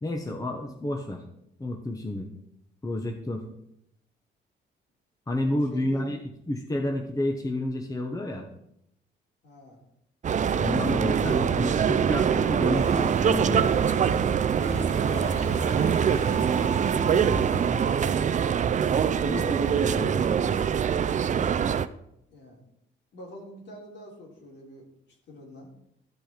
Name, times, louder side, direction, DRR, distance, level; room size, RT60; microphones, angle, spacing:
voice 1, 0.0-1.2 1.6-2.3 2.8-3.4 5.3-6.2 6.5-8.5 10.6-13.7 19.1-20.7, left 1 dB, 15° left, 3 dB, 1.0 m, -30 dB
voice 2, 5.7-6.1 9.4-9.8 15.1-18.3 22.3-22.6 23.1-24.9 25.3-25.7, left 1 dB, 60° left, -2 dB, 3.4 m, -45 dB
sound 1, 10.2-21.9, right 7 dB, 40° right, 0.5 m, -24 dB
sound 2, 12.7-18.2, equal, 35° left, 3.0 m, -36 dB
12.5 x 5.4 x 4.4 m, 0.78 s
cardioid pair, 90°, 20 cm